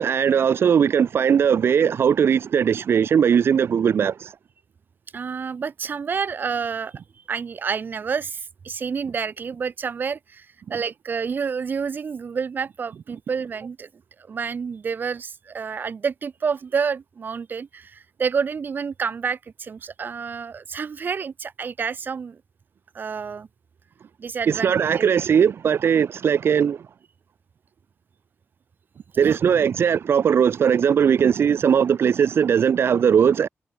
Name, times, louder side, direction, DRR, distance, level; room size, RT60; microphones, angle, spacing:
voice 1, 0.0-4.3 24.5-26.8 29.2-33.5, right 7 dB, 60° right, 2.8 m, -19 dB
voice 2, 5.1-6.9 7.3-13.9 14.2-22.4 22.9-23.5 24.2-25.1 29.2-29.4, right 6 dB, 45° right, 7.9 m, -29 dB
wide cardioid pair, 165°, 5 cm